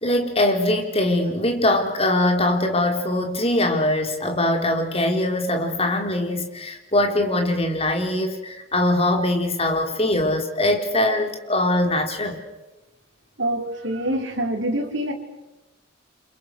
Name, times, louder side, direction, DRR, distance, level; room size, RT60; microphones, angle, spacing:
voice 1, 0.0-12.4, left 1 dB, 30° left, 4 dB, 3.7 m, -22 dB
voice 2, 13.4-15.1, right 1 dB, 60° right, 1 dB, 4.8 m, -25 dB
30.0 x 26.5 x 6.5 m, 1.0 s
head